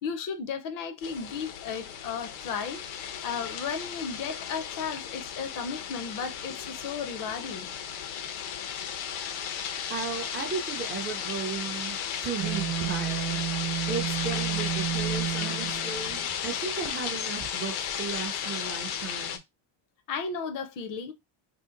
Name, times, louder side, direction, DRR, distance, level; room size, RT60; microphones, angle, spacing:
voice 1, 0.0-2.8 3.2-7.7 20.1-21.1, left 6 dB, 45° left, 0.5 m, -34 dB
sound 1, 1.0-19.4, left 8 dB, 85° left, 0.8 m, -34 dB
voice 2, 9.9-13.4 13.9-19.4, right 5 dB, 25° right, 0.3 m, -35 dB
sound 2, 12.4-16.6, right 13 dB, 80° right, 0.8 m, -32 dB
2.8 x 2.5 x 3.7 m
cardioid pair, 175°, 47 cm